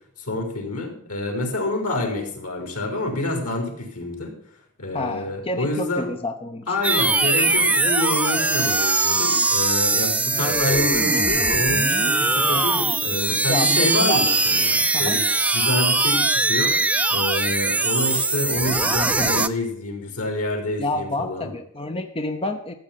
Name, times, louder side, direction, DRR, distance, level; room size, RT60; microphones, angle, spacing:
voice 1, 0.2-4.4 4.8-6.1 6.7-15.3 15.5-21.5, left 2 dB, 85° left, 4 dB, 4.1 m, -27 dB
voice 2, 4.9-6.7 13.5-14.2 14.9-15.2 20.8-22.7, left 2 dB, 25° left, 6 dB, 0.9 m, -28 dB
sound 1, 6.8-19.5, right 3 dB, 5° right, 0.4 m, -21 dB
14.0 x 7.8 x 5.8 m, 0.68 s
head